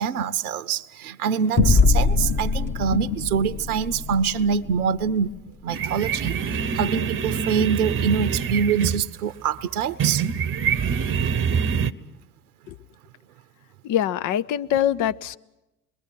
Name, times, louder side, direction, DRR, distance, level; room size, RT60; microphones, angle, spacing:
voice 1, 0.0-5.4 5.6-6.4 6.7-10.3, right 7 dB, 80° right, 0.8 m, -25 dB
sound 1, 1.6-6.4, left 4 dB, 25° left, 2.3 m, -24 dB
sound 2, 5.7-11.9, right 6 dB, 25° right, 1.0 m, -25 dB
voice 2, 13.8-15.4, left 10 dB, 45° left, 0.9 m, -23 dB
27.0 x 22.0 x 7.6 m
figure-of-eight pair, 70°, 44 cm